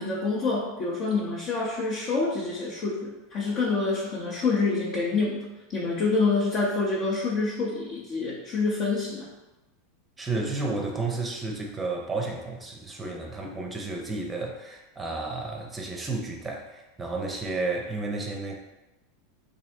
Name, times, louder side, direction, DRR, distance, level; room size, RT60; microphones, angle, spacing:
voice 1, 0.0-5.4 5.7-9.3, left 3 dB, 40° left, -5 dB, 0.8 m, -27 dB
voice 2, 10.2-18.6, right 3 dB, 15° right, 0 dB, 0.7 m, -32 dB
3.2 x 2.6 x 4.2 m, 1.0 s
figure-of-eight pair, 85°, 0 cm